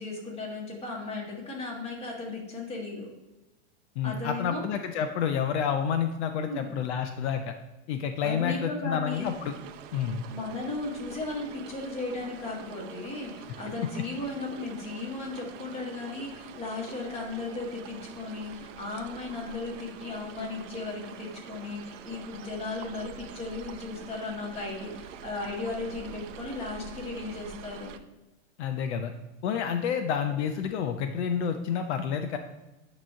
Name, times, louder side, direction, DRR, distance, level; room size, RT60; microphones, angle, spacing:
voice 1, 0.0-3.1 4.0-4.6 6.4-6.7 8.2-9.3 10.3-27.9, left 3 dB, 15° left, -2 dB, 1.5 m, -36 dB
voice 2, 4.0-7.5 7.9-9.5 9.9-10.2 28.6-29.1 29.4-32.4, left 7 dB, 65° left, 7 dB, 0.7 m, -29 dB
sound 1, 9.1-28.0, right 8 dB, 85° right, 0.7 m, -45 dB
8.9 x 3.0 x 5.6 m, 1.0 s
supercardioid pair, 160°, 37 cm